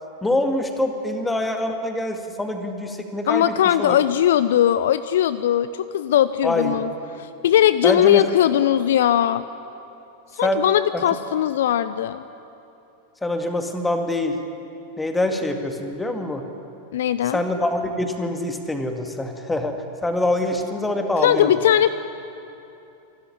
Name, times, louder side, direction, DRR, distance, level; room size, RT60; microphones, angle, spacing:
voice 1, 0.2-4.0 6.4-6.8 7.8-8.3 10.4-10.6 13.2-14.4 15.0-16.4 17.2-21.5, left 1 dB, 10° left, 5 dB, 2.1 m, -24 dB
voice 2, 3.3-6.9 7.4-9.4 10.4-12.2 16.9-17.4 21.2-21.9, left 11 dB, 60° left, 14 dB, 0.5 m, -19 dB
26.0 x 13.0 x 10.0 m, 2.8 s
figure-of-eight pair, 90°, 0 cm